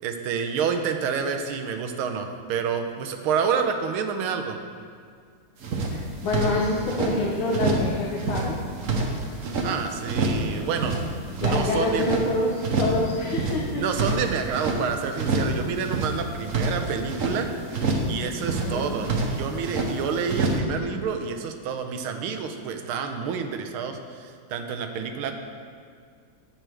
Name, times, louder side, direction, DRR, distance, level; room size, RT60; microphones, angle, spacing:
voice 1, 0.0-4.6 9.6-11.0 11.4-12.3 13.7-17.5 18.1-25.3, right 6 dB, 90° right, 6 dB, 1.6 m, -28 dB
sound 1, 5.6-7.1 7.5-9.7 10.0-10.5 10.7-12.2 12.6-13.0 13.3-14.8 15.2-15.6 15.8-17.4 17.7-18.1 18.4-19.9 20.3-20.6, right 3 dB, 50° right, 1.0 m, -26 dB
voice 2, 5.9-8.6 11.3-14.1 18.5-19.0, left 2 dB, 75° left, -3 dB, 1.8 m, -27 dB
10.5 x 7.8 x 3.4 m, 2.1 s
omnidirectional pair, 2.3 m